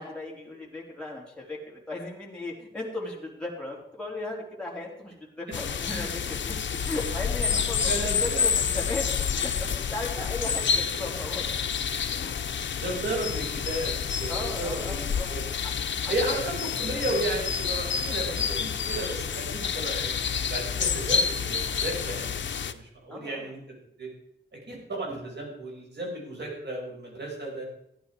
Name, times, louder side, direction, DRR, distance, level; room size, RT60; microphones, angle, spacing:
voice 1, 0.0-11.5 12.2-12.4 14.3-15.3 16.0-16.2 23.1-23.5, left 2 dB, 5° left, -4 dB, 3.9 m, -36 dB
sound 1, 5.5-22.7, left 6 dB, 75° left, 0.7 m, -29 dB
voice 2, 7.8-8.5 12.3-15.4 16.1-20.1 20.5-23.6 24.0-24.1 24.5-27.6, right 1 dB, 65° right, -1 dB, 5.4 m, -34 dB
15.0 x 10.5 x 4.7 m, 0.77 s
wide cardioid pair, 100°, 19 cm